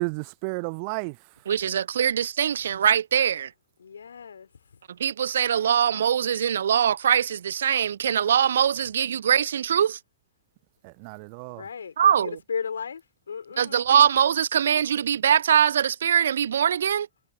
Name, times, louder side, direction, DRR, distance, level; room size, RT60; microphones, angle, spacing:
voice 1, 0.0-1.5 10.8-11.6, right 35 dB, 45° right, 0.8 m, -32 dB
voice 2, 1.5-3.5 5.0-10.0 12.0-12.4 13.6-17.1, right 9 dB, 65° right, 0.4 m, -22 dB
voice 3, 3.8-4.5 11.5-13.9, left 6 dB, 70° left, 4.1 m, -35 dB
figure-of-eight pair, 90°, 0 cm